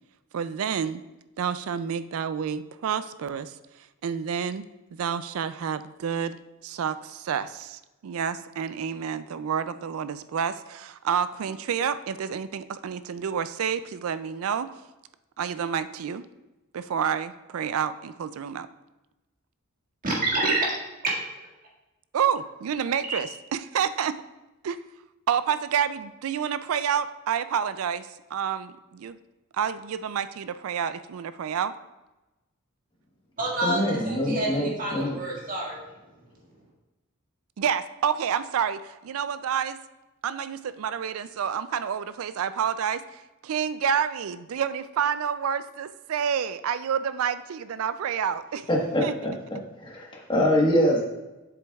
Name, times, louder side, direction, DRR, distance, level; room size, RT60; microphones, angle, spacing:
voice 1, 0.3-1.0 1.4-3.5 4.0-4.6 4.9-6.4 6.6-14.7 15.4-16.2 16.7-18.7 22.1-23.3 23.7-24.1 24.6-24.8 25.3-29.2 29.6-31.7 37.6-39.8 40.2-48.7 49.0-49.1, right 7 dB, 70° right, 13 dB, 0.4 m, -29 dB
voice 2, 20.0-20.7 33.4-35.8, right 2 dB, 40° right, -4 dB, 1.7 m, -27 dB
voice 3, 33.6-35.1 48.7-49.3 49.8-51.0, equal, 20° left, -2 dB, 1.3 m, -24 dB
7.6 x 7.0 x 2.3 m, 1.0 s
head